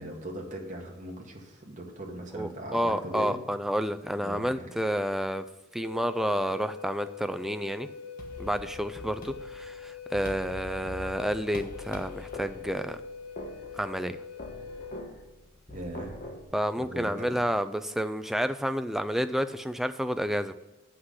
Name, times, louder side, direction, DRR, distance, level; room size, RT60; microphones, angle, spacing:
voice 1, 0.0-3.4 4.2-4.7 15.7-16.2 16.8-17.4, right 1 dB, 35° right, -1 dB, 1.8 m, -39 dB
voice 2, 2.3-5.4 5.7-7.9 8.4-13.0 13.7-14.2 16.5-20.5, equal, ahead, 10 dB, 0.3 m, -30 dB
Wind instrument woodwind instrument, 5.8-15.1, left 6 dB, 75° left, 0.6 m, -43 dB
sound 1, 8.2-16.5, left 2 dB, 40° left, 1.3 m, -44 dB
8.0 x 5.9 x 6.4 m, 1.1 s
head